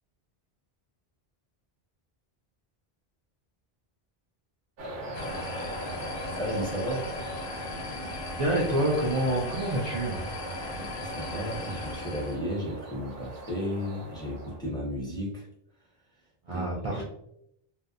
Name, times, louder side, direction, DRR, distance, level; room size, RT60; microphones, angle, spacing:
sound 1, 4.8-14.6, right 1 dB, 85° right, 0.9 m, -40 dB
sound 2, 5.1-12.4, left 2 dB, 55° left, 0.6 m, -38 dB
voice 1, 6.3-7.1 10.8-15.5 16.5-17.0, equal, 5° left, -5 dB, 0.5 m, -34 dB
voice 2, 8.4-10.3 16.5-17.0, right 1 dB, 50° right, -2 dB, 0.4 m, -27 dB
2.6 x 2.0 x 2.4 m, 0.74 s
omnidirectional pair, 1.0 m